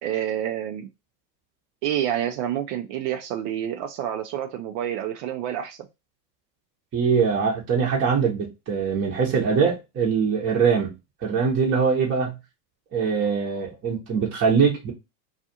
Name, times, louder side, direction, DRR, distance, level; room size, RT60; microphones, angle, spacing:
voice 1, 0.0-0.9 1.8-5.9, right 10 dB, 50° right, 0.5 m, -28 dB
voice 2, 6.9-10.9 11.2-12.3 12.9-14.9, right 6 dB, 25° right, 0.8 m, -22 dB
2.4 x 2.4 x 2.7 m
hypercardioid pair, 100°, 49 cm